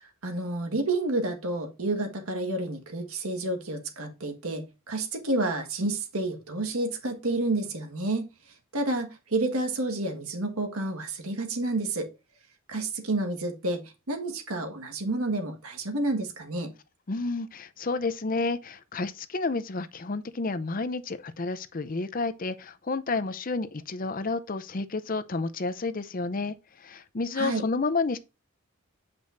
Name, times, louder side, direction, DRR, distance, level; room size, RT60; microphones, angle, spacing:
voice 1, 0.2-8.3 8.7-12.1 12.7-16.7 27.4-27.7, right 2 dB, 75° right, 1.7 m, -30 dB
voice 2, 17.1-28.2, left 3 dB, 40° left, 0.6 m, -30 dB
8.3 x 5.2 x 2.6 m
head